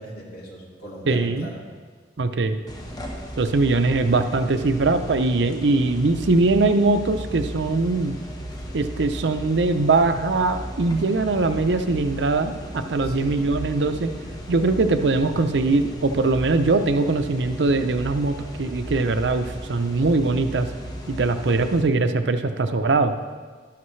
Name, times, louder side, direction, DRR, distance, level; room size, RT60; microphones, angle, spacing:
voice 1, 0.0-1.6 8.5-8.7 13.0-13.4, right 1 dB, 55° left, -3 dB, 2.6 m, -39 dB
voice 2, 1.1-1.5 2.2-2.6 3.4-8.2 8.7-14.1 14.5-20.7 21.1-23.2, right 3 dB, 70° right, 8 dB, 0.6 m, -21 dB
sound 1, 2.7-21.8, equal, 20° left, 1.1 m, -36 dB
12.0 x 11.5 x 3.2 m, 1.5 s
head